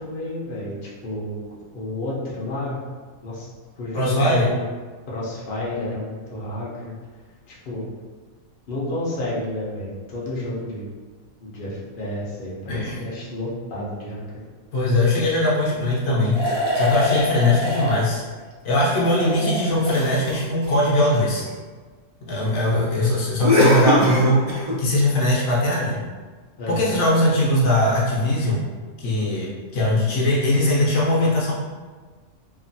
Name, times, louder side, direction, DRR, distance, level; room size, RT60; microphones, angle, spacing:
voice 1, 0.0-1.4 1.7-2.8 3.2-3.5 3.8-4.7 5.1-7.0 7.5-7.9 8.7-10.9 11.4-14.4 26.6-27.0, left 1 dB, 50° left, -6 dB, 0.7 m, -30 dB
voice 2, 3.9-4.5 12.7-13.0 14.7-16.4 16.7-18.2 18.6-21.4 22.2-24.5 24.8-26.0 26.7-28.6 29.0-31.5, left 1 dB, 70° left, -5 dB, 1.1 m, -20 dB
sound 1, 16.3-18.1 18.8-21.4 23.4-24.8, left 1 dB, 55° right, 0.3 m, -22 dB
2.9 x 2.4 x 2.6 m, 1.4 s
omnidirectional pair, 1.5 m